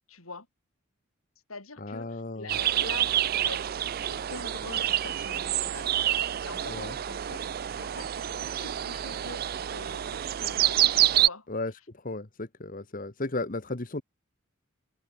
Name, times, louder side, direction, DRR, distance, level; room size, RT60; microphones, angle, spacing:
voice 1, 0.1-0.5 1.5-5.9 6.4-7.5 7.8-10.8 11.1-11.5, left 3 dB, 85° left, 6.3 m, -44 dB
voice 2, 1.8-2.5 6.7-7.0 11.5-14.0, left 2 dB, 40° left, 1.3 m, -35 dB
sound 1, 2.5-11.3, right 12 dB, 45° right, 0.4 m, -28 dB
head